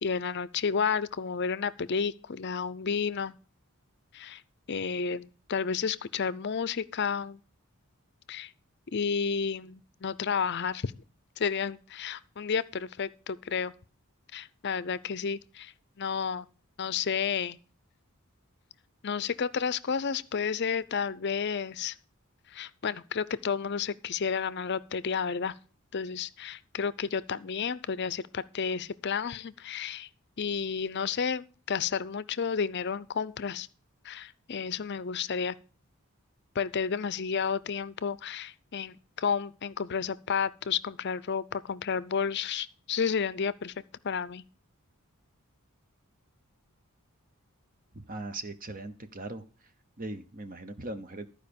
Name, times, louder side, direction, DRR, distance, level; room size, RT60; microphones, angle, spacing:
voice 1, 0.0-3.3 4.1-4.4 4.7-7.4 8.3-8.5 8.9-10.9 11.4-13.7 14.3-15.7 16.0-16.5 16.8-17.6 19.0-21.9 22.5-25.5 25.9-30.1 30.4-33.7 34.0-35.6 36.5-43.7 44.0-44.4, left 6 dB, 50° left, 0.5 m, -31 dB
voice 2, 47.9-49.4 50.0-51.3, right 2 dB, 40° right, 0.9 m, -39 dB
13.5 x 4.9 x 6.8 m
head